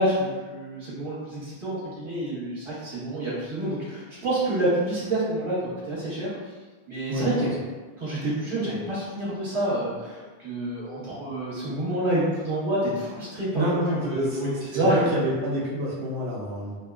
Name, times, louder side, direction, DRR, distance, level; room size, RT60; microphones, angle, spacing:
voice 1, 0.0-6.3 6.9-7.5 8.0-15.0, right 1 dB, 30° right, -9 dB, 1.0 m, -28 dB
voice 2, 13.5-16.8, equal, 80° right, -5 dB, 0.8 m, -28 dB
2.5 x 2.2 x 2.4 m, 1.3 s
omnidirectional pair, 1.1 m